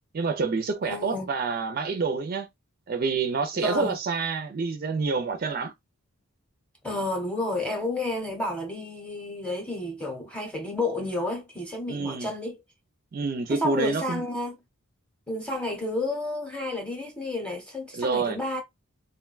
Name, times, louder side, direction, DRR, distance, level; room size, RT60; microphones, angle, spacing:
voice 1, 0.1-2.5 2.9-5.7 11.9-12.3 13.1-14.2 17.9-18.4, right 4 dB, 40° right, 0.4 m, -27 dB
voice 2, 0.8-1.3 3.6-4.0 6.8-12.6 13.5-14.6 15.3-18.6, left 2 dB, 5° left, 0.7 m, -31 dB
3.8 x 2.2 x 2.3 m
head